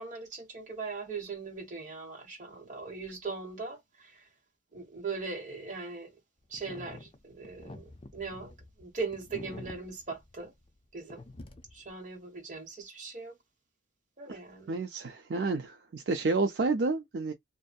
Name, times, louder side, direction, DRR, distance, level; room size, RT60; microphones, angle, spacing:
voice 1, 0.0-4.2 4.7-6.1 6.5-10.5 10.9-11.2 11.7-13.4 14.2-14.8, right 4 dB, 45° right, 1.3 m, -40 dB
sound 1, 6.5-10.9 11.1-11.9, left 2 dB, 30° left, 0.4 m, -48 dB
voice 2, 14.7-17.3, right 3 dB, 70° right, 0.4 m, -30 dB
2.6 x 2.5 x 2.3 m
head